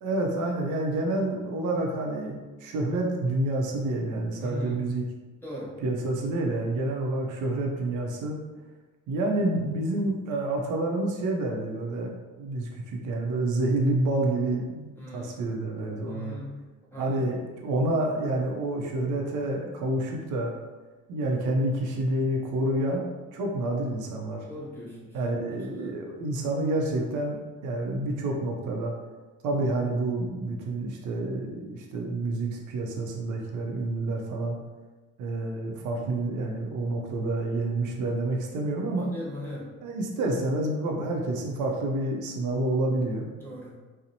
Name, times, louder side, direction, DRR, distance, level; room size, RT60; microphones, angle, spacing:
voice 1, 0.0-2.4 2.6-5.0 5.8-8.4 9.1-16.3 17.0-20.5 21.1-23.0 23.3-24.4 25.1-28.9 29.4-34.6 35.2-39.1 39.8-43.3, right 2 dB, 80° right, 0 dB, 0.5 m, -28 dB
voice 2, 4.4-4.9 5.4-5.8 14.9-15.5 16.0-16.6 16.9-17.3 24.4-25.2 25.5-26.0 39.0-39.7 43.4-43.8, left 1 dB, 5° left, -7 dB, 0.9 m, -40 dB
2.6 x 2.0 x 2.7 m, 1.3 s
cardioid pair, 90°, 30 cm